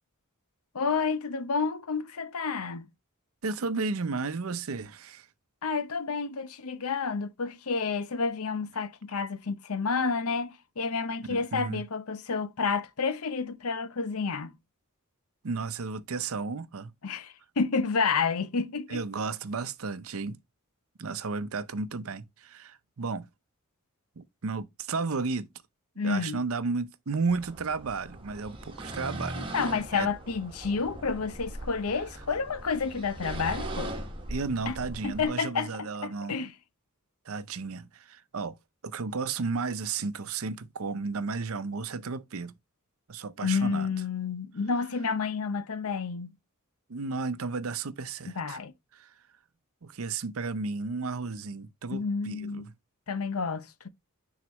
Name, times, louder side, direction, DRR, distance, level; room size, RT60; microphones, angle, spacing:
voice 1, 0.7-2.9 5.6-14.5 17.0-19.0 26.0-26.4 29.4-33.9 34.7-34.8 35.0-35.7 36.0-36.5 43.4-46.3 48.2-48.7 51.9-52.7 53.1-53.9, left 5 dB, 80° left, 0.8 m, -30 dB
voice 2, 3.4-5.3 11.3-11.8 15.4-16.9 18.9-20.4 21.0-23.3 24.2-25.5 26.0-29.4 29.9-30.1 34.3-36.4 37.3-38.6 38.8-42.5 43.1-43.9 46.9-48.6 48.9-49.1 49.8-52.6, right 4 dB, 70° right, 0.7 m, -33 dB
sound 1, 27.3-35.3, right 1 dB, 25° right, 1.4 m, -40 dB
9.4 x 4.0 x 3.0 m
head